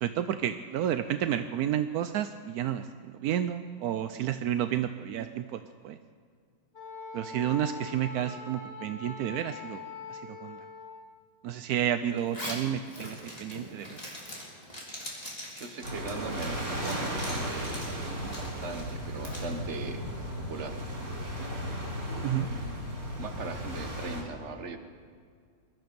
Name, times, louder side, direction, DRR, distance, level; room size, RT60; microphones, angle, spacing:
voice 1, 0.0-2.9 3.2-6.0 7.1-9.8 10.1-10.6 11.4-14.0 22.2-22.5, right 10 dB, 75° right, 9 dB, 0.8 m, -31 dB
Wind instrument woodwind instrument, 6.7-11.0, left 4 dB, 75° left, 3.8 m, -42 dB
Zipper (clothing), 12.2-19.5, left 1 dB, 20° left, 2.8 m, -42 dB
voice 2, 15.5-17.8 18.4-20.0 20.4-20.8 22.3-24.8, right 4 dB, 40° right, 6 dB, 1.3 m, -40 dB
sound 1, 15.8-24.2, equal, 55° right, 5.1 m, -35 dB
21.5 x 12.5 x 5.3 m, 2.1 s
omnidirectional pair, 2.1 m